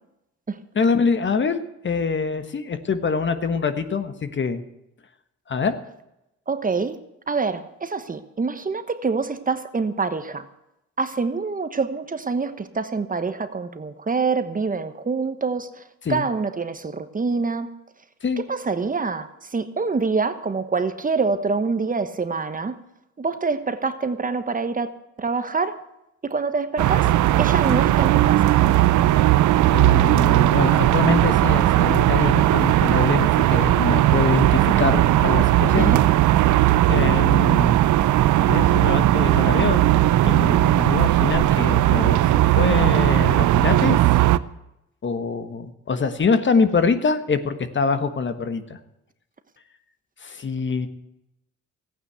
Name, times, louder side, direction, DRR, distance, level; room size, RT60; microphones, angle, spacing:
voice 1, 0.7-4.6 5.5-5.8 16.0-16.3 18.2-18.4 29.7-35.9 36.5-36.6 36.9-37.8 38.5-39.8 40.2-42.3 42.6-44.0 45.0-48.8 50.2-50.9, left 5 dB, 40° left, 1.4 m, -24 dB
voice 2, 6.5-7.0 7.3-10.4 11.0-15.7 16.1-17.7 18.5-22.8 23.2-24.9 25.2-25.8 26.2-27.1 27.4-28.5 35.8-36.0, right 4 dB, 30° right, 1.1 m, -25 dB
sound 1, 26.8-44.4, right 14 dB, 75° right, 0.6 m, -17 dB
14.5 x 9.3 x 8.1 m
cardioid pair, 90°, 30 cm